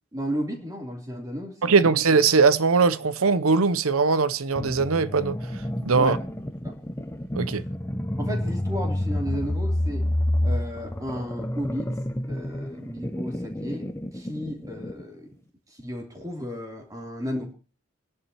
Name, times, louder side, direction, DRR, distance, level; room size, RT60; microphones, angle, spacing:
voice 1, 0.1-1.8 6.0-6.2 6.6-6.8 8.2-10.1 10.4-11.9 12.3-13.9 14.1-15.3 15.7-17.5, equal, 15° right, 3.1 m, -33 dB
voice 2, 1.6-6.2 7.3-7.6, right 4 dB, 90° right, 0.7 m, -21 dB
sound 1, 4.6-15.0, left 1 dB, 10° left, 0.8 m, -29 dB
28.0 x 11.0 x 3.0 m
head